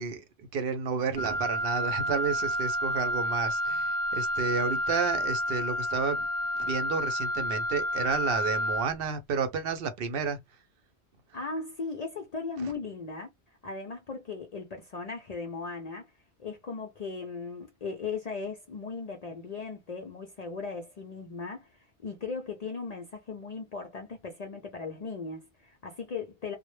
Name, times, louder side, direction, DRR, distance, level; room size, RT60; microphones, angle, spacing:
voice 1, 0.0-6.3 6.5-10.6 12.6-12.7, right 5 dB, 65° right, 0.7 m, -31 dB
Wind instrument woodwind instrument, 1.2-8.9, equal, 10° left, 0.7 m, -30 dB
voice 2, 11.3-13.3 13.6-16.1 16.4-26.6, left 4 dB, 55° left, 0.5 m, -37 dB
2.1 x 2.0 x 3.0 m
omnidirectional pair, 1.1 m